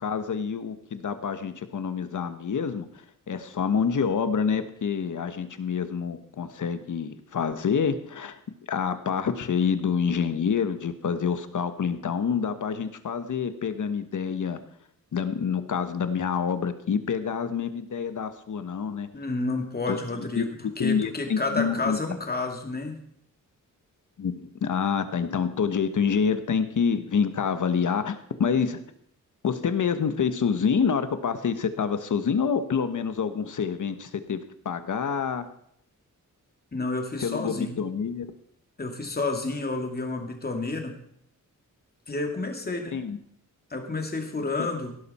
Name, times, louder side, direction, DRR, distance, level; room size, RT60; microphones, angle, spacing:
voice 1, 0.0-2.9 3.3-8.4 8.7-14.6 15.1-19.1 19.9-22.0 24.2-28.8 29.4-35.4 37.2-38.3 42.9-43.2, left 6 dB, 65° left, 10 dB, 1.2 m, -27 dB
voice 2, 19.1-20.5 20.8-23.0 36.7-37.8 38.8-41.0 42.1-43.0 43.7-45.0, left 3 dB, 30° left, 3 dB, 2.4 m, -30 dB
17.0 x 12.0 x 4.3 m, 0.69 s
wide cardioid pair, 130°, 33 cm